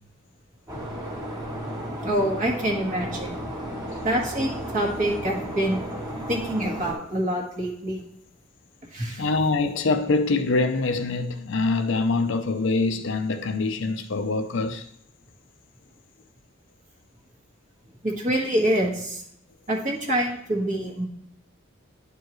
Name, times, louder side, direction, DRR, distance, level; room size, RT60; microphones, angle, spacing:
sound 1, 0.7-6.9, equal, 20° right, 1.4 m, -34 dB
voice 1, 2.0-3.4 4.0-5.9 6.3-8.1 8.9-9.2 18.0-19.2 19.7-21.1, right 1 dB, 35° right, 1.4 m, -26 dB
voice 2, 9.2-14.8, left 3 dB, 60° left, 0.6 m, -24 dB
10.5 x 4.6 x 3.1 m
head